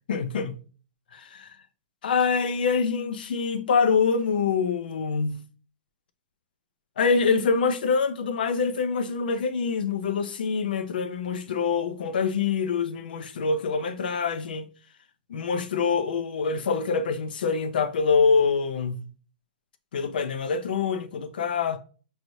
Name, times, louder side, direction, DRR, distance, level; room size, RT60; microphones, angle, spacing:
voice 1, 0.1-0.6 1.1-1.6 2.0-5.4 7.0-14.7 15.3-19.1 19.9-21.8, left 5 dB, 75° left, 0.5 m, -25 dB
4.6 x 3.1 x 2.7 m
supercardioid pair, 180°, 5 cm